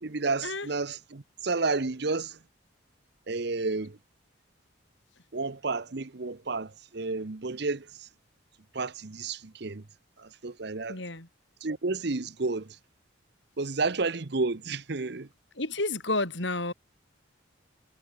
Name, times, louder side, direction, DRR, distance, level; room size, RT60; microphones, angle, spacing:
voice 1, 0.0-2.4 3.3-4.0 5.3-8.1 8.7-9.8 10.2-11.0 11.6-12.8 13.6-15.3, right 3 dB, 55° right, 0.9 m, -31 dB
voice 2, 10.9-11.3 15.5-16.7, left 2 dB, 65° left, 5.2 m, -30 dB
head